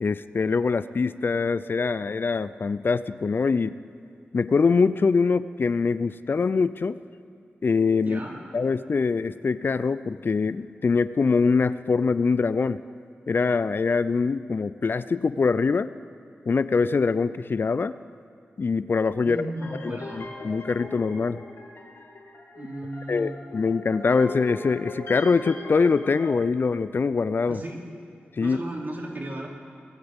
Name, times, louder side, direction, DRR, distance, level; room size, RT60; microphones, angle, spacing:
voice 1, 0.0-3.7 4.3-7.0 7.6-8.2 8.5-12.8 13.3-15.9 16.5-17.9 18.6-19.4 19.8-21.4 23.1-27.6 28.4-28.6, left 4 dB, 55° left, 15 dB, 0.4 m, -23 dB
voice 2, 8.0-8.4 19.2-20.3 22.5-23.4 27.4-27.8 28.4-29.5, right 1 dB, 50° right, -1 dB, 2.9 m, -35 dB
sound 1, 19.6-26.3, left 2 dB, 80° left, 2.2 m, -40 dB
20.0 x 15.0 x 3.6 m, 2.5 s
cardioid pair, 50°, 4 cm